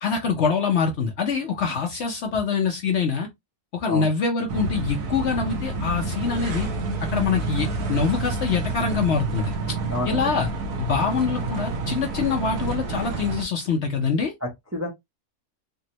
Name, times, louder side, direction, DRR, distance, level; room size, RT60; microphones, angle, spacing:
voice 1, 0.0-3.3 3.7-6.7 7.1-9.5 10.1-10.5 10.8-14.3, left 5 dB, 60° left, 0.7 m, -24 dB
sound 1, 4.5-13.5, right 3 dB, 85° right, 1.2 m, -29 dB
voice 2, 9.9-10.3 14.4-14.9, left 1 dB, 25° right, 0.4 m, -29 dB
3.4 x 2.0 x 2.8 m
omnidirectional pair, 1.6 m